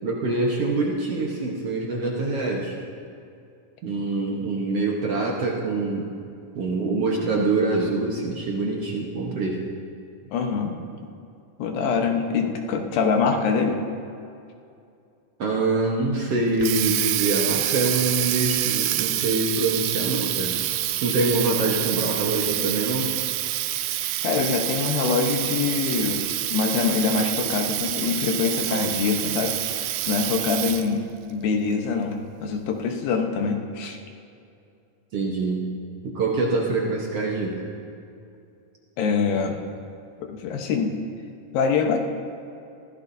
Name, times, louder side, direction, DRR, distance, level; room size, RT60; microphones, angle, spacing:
voice 1, 0.0-2.8 3.8-6.1 6.6-9.6 15.4-20.6 21.0-23.1 35.1-35.7 36.0-37.6, right 3 dB, 60° right, -2 dB, 1.8 m, -25 dB
voice 2, 10.3-10.8 11.6-13.8 24.2-34.0 39.0-39.6 40.2-41.0 41.5-42.0, left 5 dB, 85° left, 3 dB, 2.9 m, -24 dB
Water tap faucet, 16.3-31.0, right 14 dB, 90° right, 2.4 m, -27 dB
23.0 x 15.5 x 2.7 m, 2.5 s
omnidirectional pair, 4.0 m